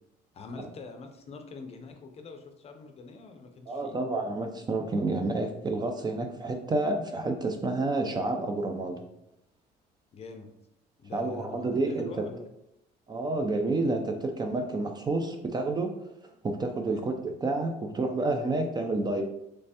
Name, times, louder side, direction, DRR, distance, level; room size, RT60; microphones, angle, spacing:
voice 1, 0.3-4.0 10.1-10.5 11.0-12.5 16.8-17.0, left 3 dB, 40° left, 5 dB, 0.5 m, -44 dB
voice 2, 3.7-9.0 11.1-12.1 13.1-15.9 16.4-19.2, right 2 dB, 25° right, 5 dB, 0.4 m, -29 dB
3.2 x 3.2 x 2.8 m, 0.81 s
cardioid pair, 110°, 17 cm